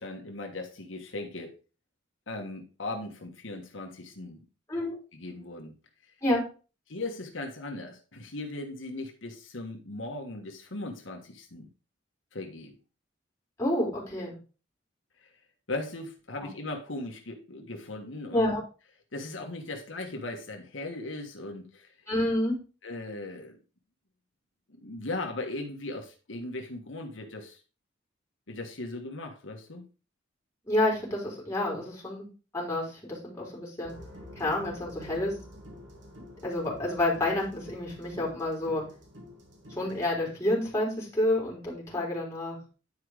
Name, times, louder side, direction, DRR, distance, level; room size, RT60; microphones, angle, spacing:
voice 1, 0.0-1.5 2.3-4.4 5.1-5.7 6.9-11.7 12.3-12.7 15.7-18.5 19.1-21.9 22.8-23.6 24.8-27.6 28.5-29.8, left 2 dB, 85° left, 3 dB, 1.5 m, -38 dB
voice 2, 13.6-14.3 16.4-16.5 18.3-18.6 22.1-22.5 30.7-32.3 32.5-33.9 34.4-35.3 36.4-38.8 39.7-42.6, left 1 dB, 15° left, -3 dB, 3.8 m, -29 dB
sound 1, 33.8-40.1, left 1 dB, 65° right, 2.5 m, -48 dB
10.5 x 5.0 x 4.9 m, 0.35 s
head